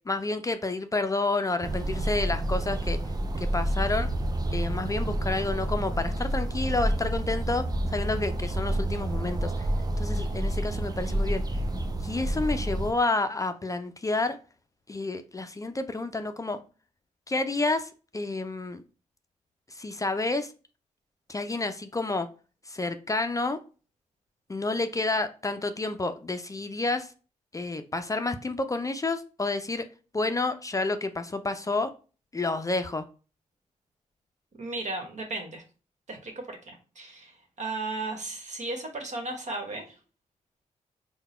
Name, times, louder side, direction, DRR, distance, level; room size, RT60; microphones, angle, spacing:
voice 1, 0.1-3.0 3.4-4.1 4.5-9.7 10.0-11.4 12.0-14.4 14.9-16.6 17.3-18.8 19.7-20.5 21.3-22.3 22.7-23.6 24.5-27.1 27.5-29.9 30.1-31.9 32.3-33.0, left 2 dB, 25° left, 8 dB, 0.4 m, -29 dB
sound 1, 1.6-12.9, right 1 dB, 30° right, 0.6 m, -29 dB
voice 2, 34.6-35.6 36.1-40.0, right 2 dB, 55° right, 4 dB, 1.2 m, -35 dB
3.9 x 2.2 x 4.2 m, 0.35 s
supercardioid pair, 55°, 14 cm